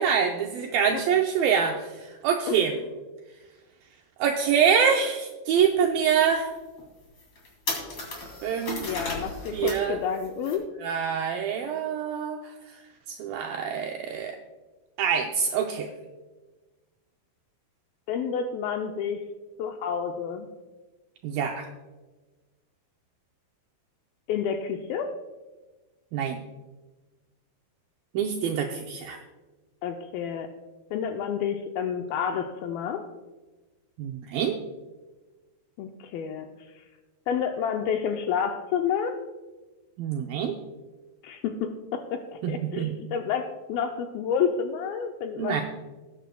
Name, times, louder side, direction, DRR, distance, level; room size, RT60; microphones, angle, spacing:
voice 1, 0.0-1.9 2.2-2.7 4.2-6.5 8.4-8.8 9.5-10.0 10.8-12.4 13.2-14.3 15.0-15.9 21.2-21.7 26.1-26.4 28.2-29.2 34.0-34.6 40.0-40.6 42.4-42.9 45.4-45.6, right 7 dB, 85° right, 3 dB, 2.1 m, -25 dB
voice 2, 2.5-2.8 8.8-10.7 18.1-19.2 19.6-20.5 24.3-25.1 29.8-30.5 30.9-33.0 35.8-36.5 37.3-39.2 41.2-45.6, left 7 dB, 85° left, 5 dB, 2.1 m, -29 dB
sound 1, 5.5-5.6 6.1-6.2 6.8-6.9 7.2-9.9 10.1-10.6, left 2 dB, 35° left, 3.1 m, -34 dB
18.5 x 9.2 x 2.3 m, 1.2 s
omnidirectional pair, 4.7 m